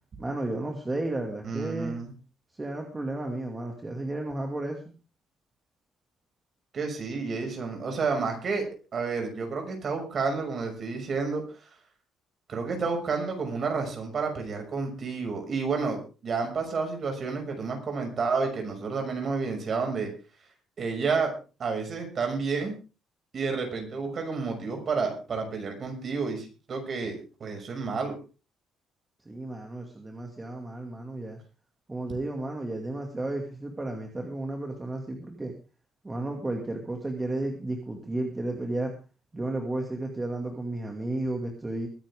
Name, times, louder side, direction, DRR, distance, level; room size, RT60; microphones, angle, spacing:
voice 1, 0.2-2.0 2.5-4.8 29.3-31.4 31.9-35.5 36.0-38.9 39.3-41.9, right 2 dB, 15° right, 2 dB, 2.4 m, -33 dB
voice 2, 1.4-2.1 6.7-8.6 8.9-11.4 12.5-20.1 20.8-21.3 21.6-22.7 23.3-28.1, right 4 dB, 40° right, 3 dB, 6.2 m, -30 dB
22.5 x 10.5 x 3.7 m, 0.34 s
cardioid pair, 135°, 0 cm